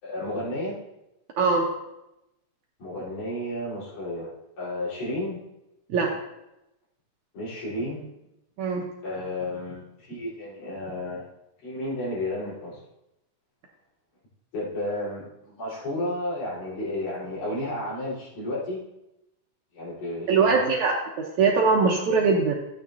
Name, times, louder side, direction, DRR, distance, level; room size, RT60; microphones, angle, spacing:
voice 1, 0.0-0.8 2.8-5.4 7.3-8.1 9.0-11.3 11.6-12.8 14.5-18.8 19.7-20.7, left 1 dB, 65° left, -8 dB, 5.9 m, -32 dB
voice 2, 1.4-1.7 5.9-6.1 8.6-8.8 20.3-22.5, right 4 dB, 70° right, -1 dB, 1.9 m, -22 dB
15.0 x 9.1 x 2.7 m, 0.90 s
omnidirectional pair, 4.2 m